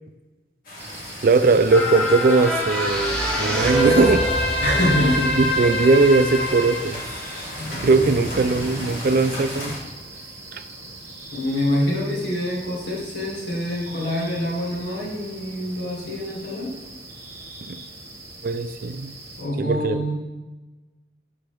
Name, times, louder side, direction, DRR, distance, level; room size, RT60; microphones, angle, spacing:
sound 1, 0.6-9.8, left 1 dB, 55° left, 2.4 m, -35 dB
sound 2, 0.8-19.4, right 2 dB, 15° right, 1.3 m, -41 dB
voice 1, 1.2-4.3 5.4-7.0 7.7-9.8 10.5-10.6 17.6-17.8 18.4-19.1 19.6-20.1, right 3 dB, 50° right, 11 dB, 0.4 m, -19 dB
sound 3, 1.7-8.3 8.8-8.9, equal, 5° left, 1.6 m, -25 dB
voice 2, 4.6-5.3 11.3-16.7 19.4-20.1, left 1 dB, 85° left, -4 dB, 2.5 m, -25 dB
11.5 x 4.7 x 3.5 m, 1.2 s
head